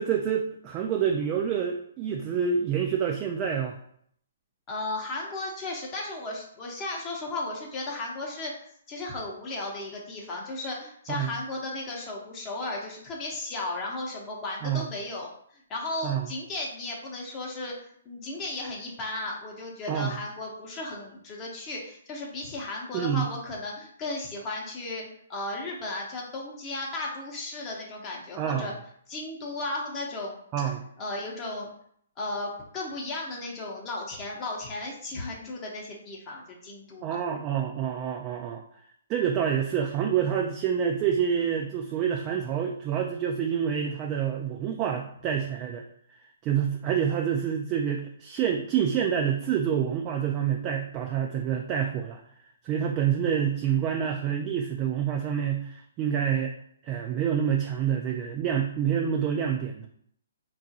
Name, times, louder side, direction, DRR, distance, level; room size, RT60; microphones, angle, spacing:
voice 1, 0.0-3.7 11.1-11.3 14.6-14.9 16.0-16.3 19.9-20.2 22.9-23.3 28.4-28.7 30.5-30.8 37.0-38.6 39.1-45.8 46.4-52.2 52.6-56.5 56.8-59.9, right 8 dB, 25° right, 2 dB, 0.3 m, -27 dB
voice 2, 4.7-8.5 8.9-15.3 15.7-17.7 18.1-25.0 25.3-28.7 29.1-30.4 31.0-31.7 32.2-37.2, left 2 dB, 25° left, -2 dB, 0.7 m, -35 dB
3.6 x 2.4 x 2.7 m, 0.66 s
hypercardioid pair, 145°, 0 cm